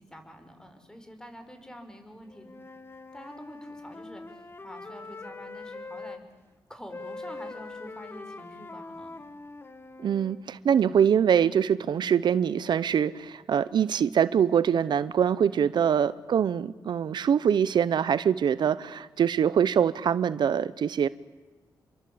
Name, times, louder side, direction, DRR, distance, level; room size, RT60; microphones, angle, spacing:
voice 1, 0.0-2.5 3.1-6.2 6.7-9.2 15.5-15.7, equal, 10° left, 7 dB, 5.3 m, -47 dB
Wind instrument woodwind instrument, 2.3-6.2 6.9-10.4, left 3 dB, 30° left, 2.0 m, -43 dB
voice 2, 10.0-21.1, right 8 dB, 75° right, 17 dB, 0.8 m, -24 dB
29.0 x 23.0 x 8.7 m, 1.2 s
cardioid pair, 90°, 8 cm